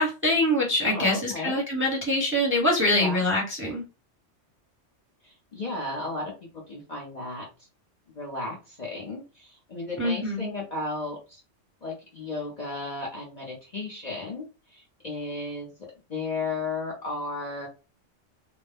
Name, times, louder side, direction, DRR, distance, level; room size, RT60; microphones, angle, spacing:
voice 1, 0.0-3.8 10.0-10.5, left 1 dB, 10° right, -2 dB, 0.7 m, -24 dB
voice 2, 0.8-1.6 2.9-3.2 5.2-6.3 6.7-7.5 8.1-11.4 11.8-14.5 14.7-15.7 16.1-17.7, left 3 dB, 40° left, -2 dB, 0.8 m, -34 dB
2.5 x 2.1 x 3.3 m, 0.30 s
omnidirectional pair, 1.3 m